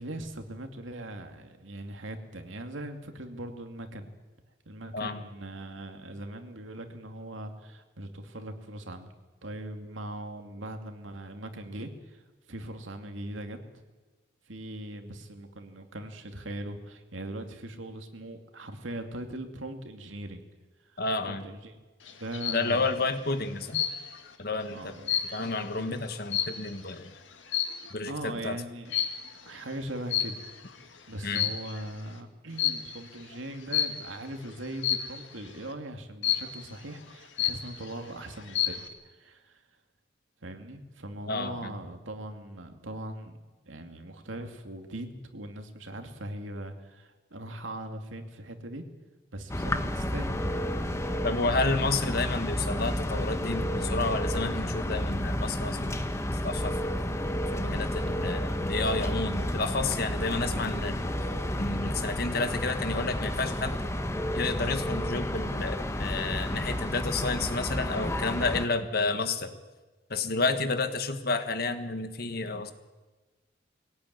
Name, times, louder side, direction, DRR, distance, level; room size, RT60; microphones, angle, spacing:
voice 1, 0.0-4.1 4.7-9.1 9.4-12.2 12.5-13.6 14.5-20.4 20.9-21.0 21.3-21.8 22.2-22.9 24.7-25.5 25.8-26.0 28.0-28.9 29.4-30.4 31.1-39.6 40.4-43.4 43.6-48.8 49.3-50.4 51.1-51.4 70.6-70.7, right 1 dB, 85° right, 6 dB, 2.4 m, -40 dB
voice 2, 21.0-21.4 22.5-23.8 24.4-24.9 25.3-27.1 27.9-28.6 31.2-31.5 41.3-41.7 51.2-56.0 56.4-57.0 57.5-61.1 61.5-63.9 64.3-69.6 70.1-72.7, left 3 dB, 50° left, 9 dB, 1.5 m, -31 dB
sound 1, 22.1-22.7 23.7-24.3 24.7-26.9 27.5-27.9 28.9-29.3 30.1-30.7 31.2-31.9 32.6-32.9 33.7-34.1 34.8-35.2 36.2-36.7 37.1-37.2 37.4-38.0 38.4-38.9, left 10 dB, 80° left, 1.9 m, -29 dB
sound 2, 49.5-68.7, equal, 15° left, 1.1 m, -31 dB
22.0 x 17.5 x 9.5 m, 1.2 s
head